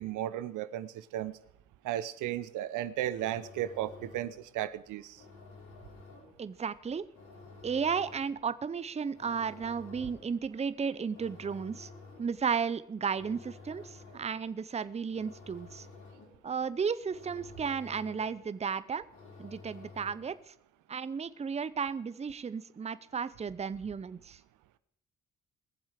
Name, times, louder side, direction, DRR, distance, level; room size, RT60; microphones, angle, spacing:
voice 1, 0.0-1.4 1.8-5.2, right 12 dB, 85° right, 14 dB, 0.7 m, -35 dB
sound 1, 3.1-20.5, left 3 dB, 80° left, 3.9 m, -53 dB
voice 2, 6.4-7.0 7.6-11.9 12.2-15.9 16.4-19.1 19.4-20.4 20.9-24.4, right 6 dB, 20° right, 15 dB, 0.6 m, -34 dB
20.5 x 7.3 x 5.0 m, 0.72 s
cardioid pair, 90°, 30 cm